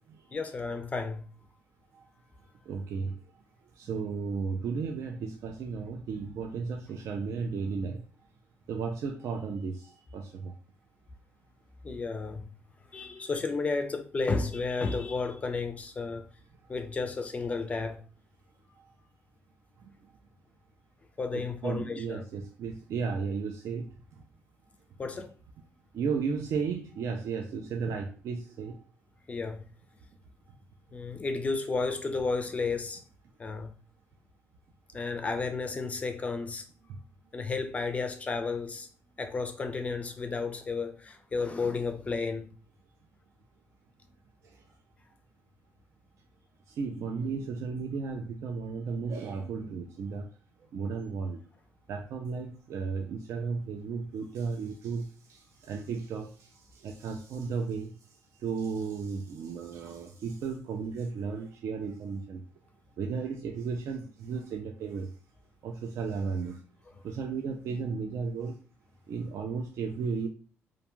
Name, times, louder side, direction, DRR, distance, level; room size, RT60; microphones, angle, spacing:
voice 1, 0.3-1.2 11.8-12.4 12.9-16.3 16.7-18.0 21.2-22.2 25.0-25.3 29.3-29.6 30.9-33.0 33.4-33.7 34.9-36.6 37.3-38.9 39.2-42.5, left 4 dB, 25° left, 0.4 m, -32 dB
voice 2, 2.7-3.2 3.8-8.0 8.7-10.5 18.8-18.9 19.8-19.9 21.3-24.2 25.9-28.8 36.9-37.0 44.4-44.6 46.7-50.3 50.7-51.4 51.9-57.9 58.4-62.4 63.0-65.1 65.6-66.6 67.0-68.6 69.1-70.3, right 5 dB, 65° right, 0.4 m, -34 dB
2.5 x 2.2 x 2.9 m
cardioid pair, 130°, 5 cm